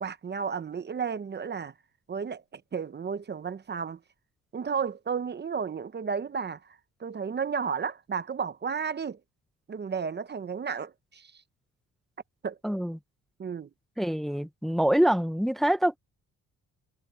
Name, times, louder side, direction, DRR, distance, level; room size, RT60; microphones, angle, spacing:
voice 1, 0.0-1.7 2.1-4.0 4.5-9.2 9.7-11.4 12.4-12.6 13.4-13.7, right 6 dB, 35° right, 0.9 m, -33 dB
voice 2, 12.6-13.0 14.0-16.0, right 1 dB, ahead, 0.8 m, -25 dB
cardioid pair, 90°, 30 cm